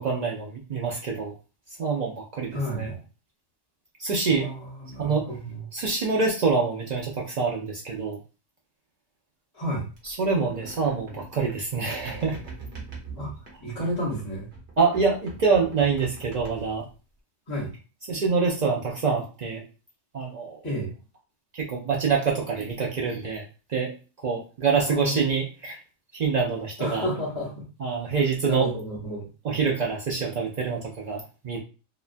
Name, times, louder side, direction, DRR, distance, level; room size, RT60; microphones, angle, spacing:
voice 1, 0.0-1.3 1.8-2.9 4.0-4.5 5.0-5.3 5.7-8.2 10.0-12.4 14.8-16.8 18.1-19.6 20.1-20.6 21.5-23.4 23.7-23.9 24.2-25.8 26.1-27.1 27.8-28.7 29.4-31.6, right 5 dB, 85° right, -2 dB, 0.3 m, -26 dB
voice 2, 2.5-3.0 4.3-5.7 9.5-9.8 13.2-13.3 13.6-14.5 17.5-17.7 20.6-20.9 24.9-25.2 26.8-27.5 28.4-29.3, equal, 20° left, -7 dB, 0.8 m, -31 dB
sound 1, 10.0-14.1 14.5-16.9, right 3 dB, 55° right, 1.1 m, -42 dB
2.9 x 2.2 x 2.4 m, 0.34 s
omnidirectional pair, 1.3 m